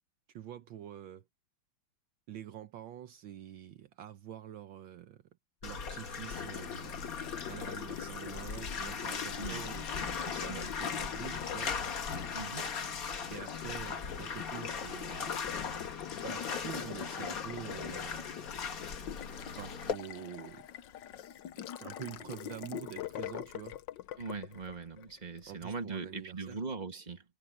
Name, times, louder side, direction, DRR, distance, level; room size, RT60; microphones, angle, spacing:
voice 1, 0.3-1.2 2.3-5.2 5.6-7.1 7.5-11.7 13.3-15.4 16.2-18.2 19.6-20.7 21.8-23.8 25.5-26.6, right 11 dB, 70° right, 1.6 m, -46 dB
Bathtub (filling or washing), 5.6-19.9, left 5 dB, 45° left, 1.8 m, -39 dB
Water tap faucet, 6.3-25.5, left 11 dB, 65° left, 1.4 m, -44 dB
voice 2, 10.2-10.7 12.3-12.7 24.2-27.2, right 4 dB, 20° right, 2.0 m, -41 dB
omnidirectional pair, 2.3 m